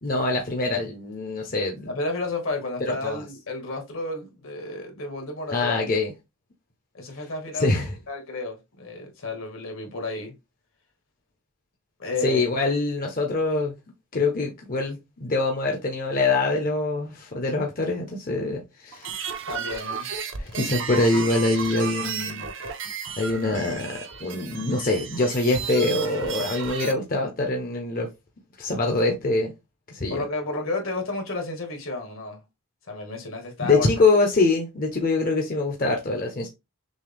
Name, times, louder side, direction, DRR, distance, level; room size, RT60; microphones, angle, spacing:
voice 1, 0.0-1.8 2.9-3.2 5.5-6.1 7.5-7.9 12.2-13.8 14.1-19.2 20.4-22.5 23.2-28.1 28.6-29.5 29.9-30.2 33.6-36.5, left 2 dB, 40° left, 0.7 m, -24 dB
voice 2, 1.9-5.8 6.9-7.7 8.1-10.3 12.0-12.4 19.5-20.1 30.1-32.4 32.9-33.9, left 2 dB, 70° left, 1.5 m, -31 dB
sound 1, 18.9-26.9, right 6 dB, 60° right, 0.7 m, -33 dB
6.1 x 2.2 x 3.4 m
head